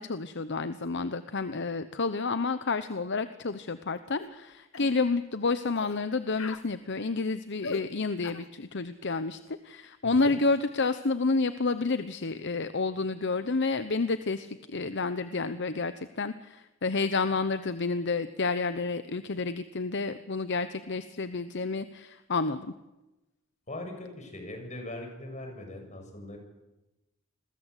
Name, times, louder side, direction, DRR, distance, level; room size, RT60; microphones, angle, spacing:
voice 1, 0.0-22.7, left 3 dB, 60° left, 12 dB, 1.0 m, -30 dB
sound 1, 4.2-4.4 4.7-5.0 5.7-6.0 6.3-6.7 7.6-7.9 8.2-8.5 10.2-10.4, left 4 dB, 75° left, 1.5 m, -40 dB
voice 2, 10.0-10.4 23.7-26.4, left 1 dB, 35° left, 4 dB, 7.2 m, -41 dB
29.0 x 22.0 x 8.4 m, 1.0 s
head